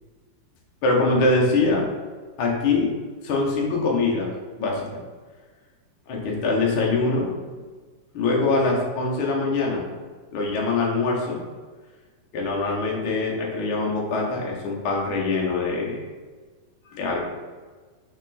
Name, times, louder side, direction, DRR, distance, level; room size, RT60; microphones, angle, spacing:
voice 1, 0.8-1.9 2.4-3.0 3.2-4.3 4.6-5.0 6.1-7.3 8.1-9.9 10.3-11.4 12.3-16.0 16.9-17.2, left 3 dB, 60° left, -2 dB, 1.4 m, -23 dB
6.2 x 4.3 x 4.2 m, 1.4 s
omnidirectional pair, 3.7 m